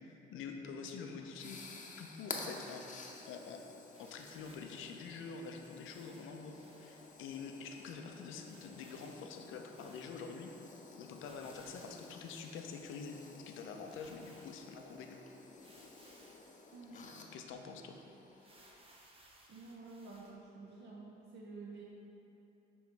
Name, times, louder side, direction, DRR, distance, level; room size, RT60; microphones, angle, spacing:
voice 1, 0.3-1.6 2.0-3.6 4.0-10.5 11.0-13.2 13.5-15.2 16.9-18.0, left 5 dB, 85° left, 4 dB, 0.6 m, -46 dB
sound 1, 0.8-18.8, left 3 dB, 40° left, 0.7 m, -52 dB
sound 2, 3.9-4.7 5.8-7.1 7.6-7.7 7.9-8.0 8.4-10.4 11.1-12.8 13.4-13.5 13.8-14.8 15.6-16.5 17.0-17.1 17.5-17.6 18.4-20.3, right 1 dB, 30° right, 0.9 m, -63 dB
voice 2, 19.5-21.8, right 3 dB, 65° right, -4 dB, 0.7 m, -50 dB
7.0 x 3.1 x 4.6 m, 2.9 s
cardioid pair, 90°, 20 cm